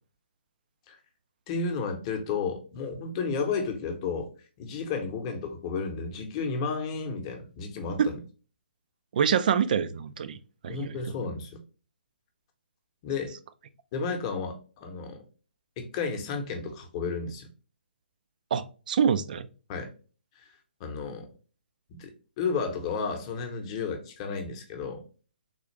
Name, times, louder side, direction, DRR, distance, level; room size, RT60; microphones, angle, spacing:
voice 1, 1.5-4.3 4.6-8.2 10.7-11.6 13.0-13.3 13.9-15.2 15.8-17.5 19.7-19.9 20.4-20.5 20.8-21.3 21.9-25.0, left 5 dB, 30° left, 0.8 m, -32 dB
voice 2, 9.1-10.4 10.6-11.0 18.5-19.5, right 7 dB, 50° right, 0.3 m, -25 dB
3.7 x 2.4 x 3.0 m
figure-of-eight pair, 140°, 6 cm